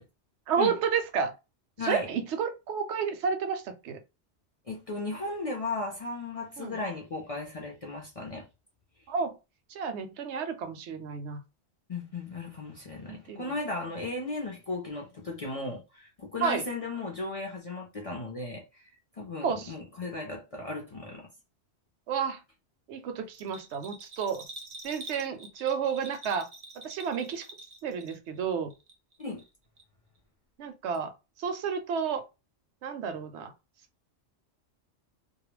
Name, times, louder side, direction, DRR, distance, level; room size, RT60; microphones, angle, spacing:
voice 1, 0.5-1.3 1.8-4.0 6.6-6.8 9.1-9.4 9.7-11.4 13.1-13.5 16.4-16.6 19.4-19.7 22.1-22.4 22.9-24.4 24.8-26.5 26.8-27.5 27.8-28.7 30.6-31.1 31.4-32.2 32.8-33.5, right 6 dB, 75° right, 0.8 m, -31 dB
voice 2, 1.8-2.1 4.7-8.5 11.9-18.9 19.2-21.3 29.2-29.4, left 2 dB, 45° left, 0.5 m, -36 dB
Bell, 23.3-28.4 28.7-29.5 29.8-29.9, right 2 dB, 45° right, 0.5 m, -46 dB
2.3 x 2.1 x 3.0 m
omnidirectional pair, 1.2 m